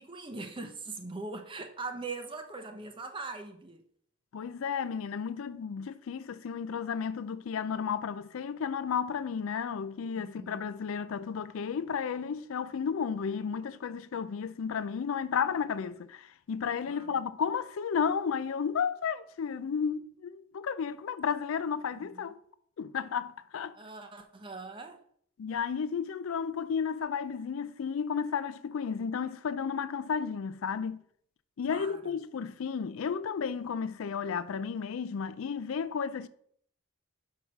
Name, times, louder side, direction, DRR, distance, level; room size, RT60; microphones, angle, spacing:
voice 1, 0.0-3.8 10.1-10.6 16.9-17.1 21.9-22.2 23.8-25.0 31.7-32.0, right 3 dB, 20° right, 0.6 m, -41 dB
voice 2, 4.3-22.4 22.8-23.8 25.4-31.0 31.6-36.3, left 6 dB, 65° left, 0.4 m, -33 dB
5.5 x 4.7 x 5.9 m
head